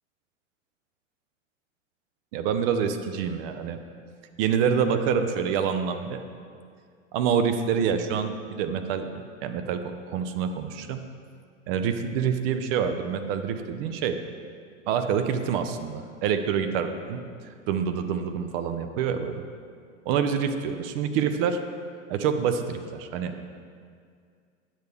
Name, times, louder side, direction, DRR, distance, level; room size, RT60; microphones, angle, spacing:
voice 1, 2.3-3.8 4.4-6.2 7.1-9.1 9.4-9.8 10.1-11.0 11.7-14.2 14.9-17.2 17.7-19.4 20.1-21.6 22.1-23.3, right 7 dB, 50° right, 8 dB, 0.7 m, -26 dB
8.8 x 6.6 x 3.5 m, 2.2 s
hypercardioid pair, 100°, 38 cm